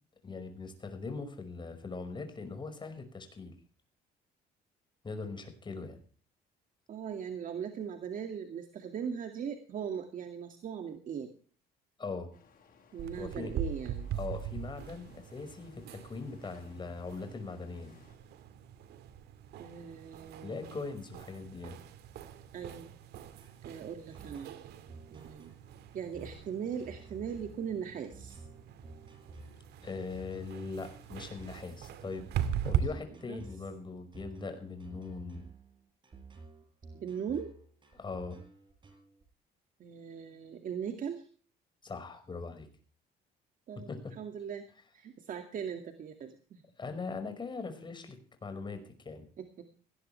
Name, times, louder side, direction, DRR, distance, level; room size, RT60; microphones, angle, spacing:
voice 1, 0.2-3.6 5.0-6.0 12.0-12.3 13.2-13.5 14.2-18.0 20.4-21.8 29.8-32.3 32.6-35.4 37.9-38.4 41.8-42.7 43.9-44.1 46.8-49.3, left 4 dB, 25° left, 7 dB, 5.4 m, -41 dB
voice 2, 6.9-11.3 12.9-14.1 19.6-20.8 22.5-22.9 23.6-24.5 25.1-25.5 25.9-28.4 32.7-32.9 33.3-33.4 36.9-37.6 39.8-41.3 43.7-43.9 44.2-44.6 44.9-46.6 49.4-49.7, right 7 dB, 55° right, 6 dB, 2.2 m, -39 dB
sound 1, 12.3-18.2, left 6 dB, 55° left, 8.0 m, -62 dB
sound 2, 13.0-32.8, right 10 dB, 75° right, 2.2 m, -41 dB
sound 3, 23.4-39.2, right 2 dB, 30° right, 5.4 m, -53 dB
18.5 x 16.0 x 3.4 m, 0.41 s
cardioid pair, 110°, 17 cm